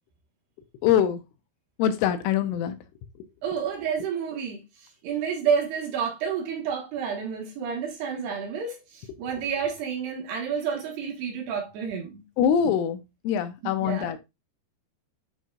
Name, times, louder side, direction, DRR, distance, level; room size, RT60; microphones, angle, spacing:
voice 1, 0.8-1.2 1.8-2.8 12.4-14.2, left 9 dB, 80° left, 3.2 m, -24 dB
voice 2, 3.4-4.6 5.0-12.2 13.8-14.1, right 7 dB, 65° right, 3.0 m, -29 dB
11.0 x 3.9 x 2.4 m
omnidirectional pair, 5.7 m